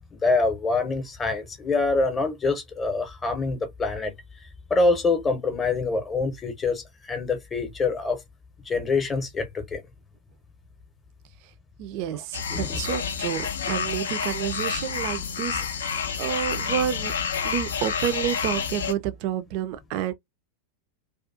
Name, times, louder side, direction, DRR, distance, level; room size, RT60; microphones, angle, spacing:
voice 1, 0.1-4.1 4.7-6.8 7.1-8.2 8.7-9.8 12.5-12.8, left 3 dB, 20° left, 0.7 m, -25 dB
voice 2, 11.8-17.1 17.4-20.1, right 10 dB, 45° right, 0.3 m, -30 dB
sound 1, 12.3-18.9, left 6 dB, 65° left, 0.4 m, -29 dB
2.4 x 2.3 x 2.4 m
figure-of-eight pair, 90°, 0 cm